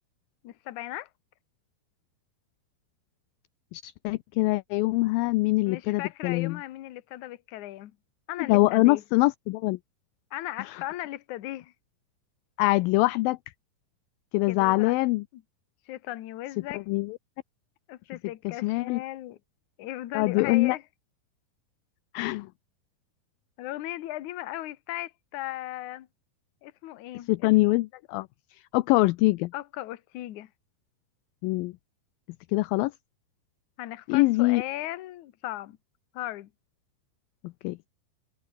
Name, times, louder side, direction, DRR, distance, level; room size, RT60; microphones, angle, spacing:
voice 1, 0.4-1.1 5.7-7.9 8.3-9.0 10.3-11.7 14.5-14.9 15.3-15.4 15.9-16.8 17.9-19.4 19.8-20.8 23.6-26.1 26.6-27.5 29.5-30.5 33.8-35.8 36.1-36.5, left 15 dB, 65° left, 2.2 m, -37 dB
voice 2, 3.7-6.6 8.5-9.8 10.6-10.8 12.6-13.4 14.3-15.2 16.7-17.2 18.4-19.0 20.1-20.8 22.1-22.5 27.3-29.5 31.4-31.7 32.5-32.9 34.1-34.6 37.4-37.8, left 21 dB, 80° left, 2.2 m, -24 dB
omnidirectional pair, 4.5 m